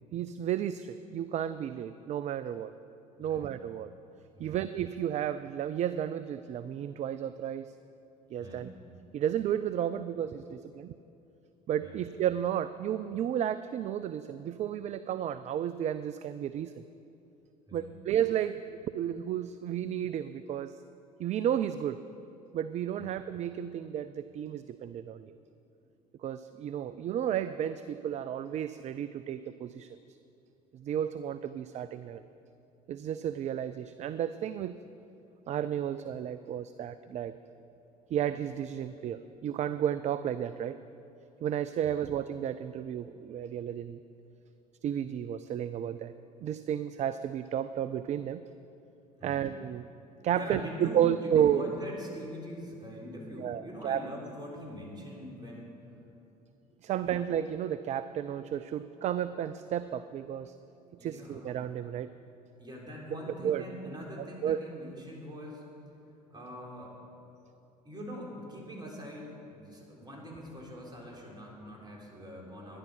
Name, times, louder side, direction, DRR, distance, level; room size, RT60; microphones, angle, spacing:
voice 1, 0.1-2.7 3.2-3.9 4.4-7.7 8.3-8.7 9.1-10.9 11.7-16.8 17.7-18.6 18.9-20.8 21.2-22.0 22.5-25.3 26.2-30.0 30.7-32.2 32.9-34.8 35.5-37.3 38.1-40.8 41.4-44.0 44.8-46.1 46.4-48.5 49.2-49.9 50.2-51.7 53.4-54.0 56.8-60.5 61.0-62.1 63.4-63.6 64.4-64.6, right 10 dB, 35° right, 13 dB, 0.4 m, -32 dB
voice 2, 3.2-3.6 4.3-4.7 8.4-8.7 11.8-12.1 17.7-17.9 23.0-23.2 41.9-42.0 49.2-49.5 50.3-55.7 56.9-57.2 61.0-61.6 62.6-65.7 66.3-66.9 67.8-72.8, equal, 20° right, -2 dB, 3.7 m, -43 dB
13.0 x 10.5 x 5.5 m, 2.8 s
figure-of-eight pair, 60°, 20 cm